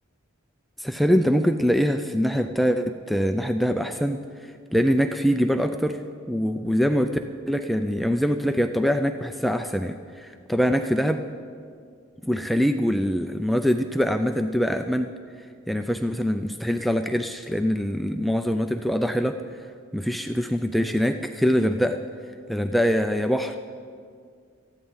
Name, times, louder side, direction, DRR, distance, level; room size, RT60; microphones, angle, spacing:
voice 1, 0.8-6.0 6.3-7.1 7.5-11.2 12.2-15.1 15.7-19.6 19.9-22.0 22.5-23.6, equal, ahead, 6 dB, 0.3 m, -24 dB
19.0 x 14.0 x 3.9 m, 2.2 s
head